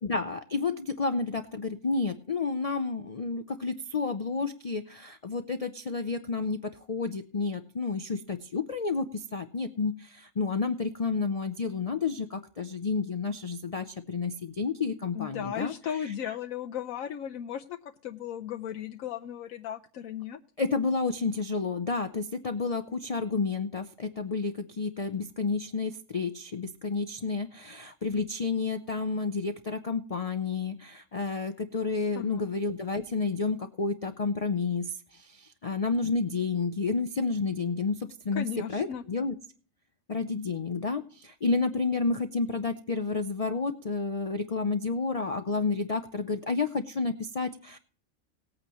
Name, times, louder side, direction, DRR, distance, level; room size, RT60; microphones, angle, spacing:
voice 1, 0.0-15.7 20.6-34.9 35.1-39.3 40.1-47.8, left 4 dB, 45° left, 8 dB, 0.4 m, -30 dB
voice 2, 15.1-17.8 18.0-20.4 32.2-32.5 38.4-39.0, left 9 dB, 75° left, 5 dB, 1.1 m, -36 dB
19.0 x 8.8 x 3.0 m, 0.43 s
omnidirectional pair, 1.5 m